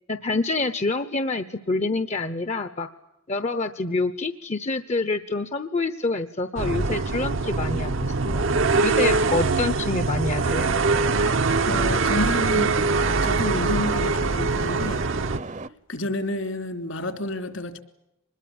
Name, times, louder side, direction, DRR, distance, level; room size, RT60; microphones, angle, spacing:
voice 1, 0.1-2.9 3.3-8.5 8.8-10.7, left 3 dB, 35° left, 11 dB, 0.8 m, -27 dB
sound 1, 6.6-15.4, right 3 dB, 65° right, 0.9 m, -23 dB
sound 2, 10.5-15.7, right 2 dB, 35° right, 0.8 m, -36 dB
voice 2, 11.6-12.8 13.2-15.0 15.9-17.8, left 1 dB, 70° left, 8 dB, 3.3 m, -29 dB
25.0 x 21.0 x 8.8 m, 0.90 s
head